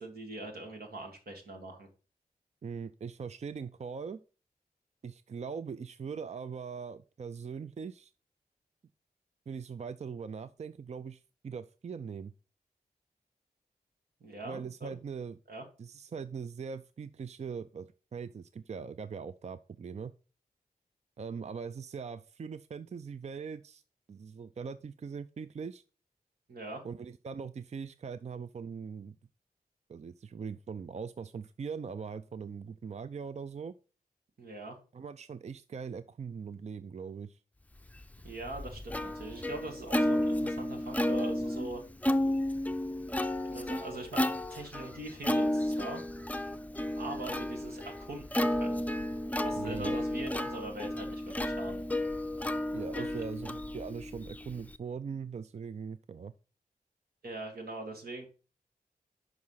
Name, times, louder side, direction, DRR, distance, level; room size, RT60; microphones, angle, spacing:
voice 1, 0.0-1.9 14.2-15.0 15.5-15.6 26.5-26.8 34.4-34.8 38.2-41.8 43.4-46.0 47.0-48.8 49.4-51.8 52.9-53.2 57.2-58.3, right 2 dB, 80° right, 2 dB, 1.9 m, -42 dB
voice 2, 2.6-4.2 5.0-8.1 9.5-12.3 14.4-15.4 15.8-20.1 21.2-23.8 24.1-25.8 26.8-29.1 29.9-33.7 34.9-37.4 49.6-50.0 52.7-56.3, right 6 dB, 45° right, 13 dB, 0.4 m, -41 dB
Plucked string instrument, 38.0-54.8, left 1 dB, 10° left, 0.5 m, -32 dB
6.3 x 4.8 x 5.6 m, 0.35 s
cardioid pair, 55°, 16 cm